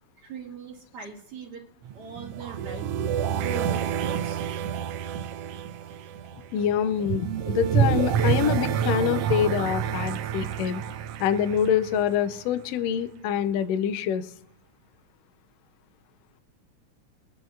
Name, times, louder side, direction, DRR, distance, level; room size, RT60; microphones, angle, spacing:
voice 1, 0.2-1.6 1.9-2.9 3.1-4.4, right 5 dB, 55° right, -2 dB, 2.4 m, -40 dB
sound 1, 1.8-12.6, right 8 dB, 85° right, 1.3 m, -28 dB
voice 2, 6.5-10.8 11.2-14.3, left 9 dB, 75° left, 12 dB, 1.7 m, -25 dB
24.0 x 8.7 x 2.4 m, 0.76 s
omnidirectional pair, 3.3 m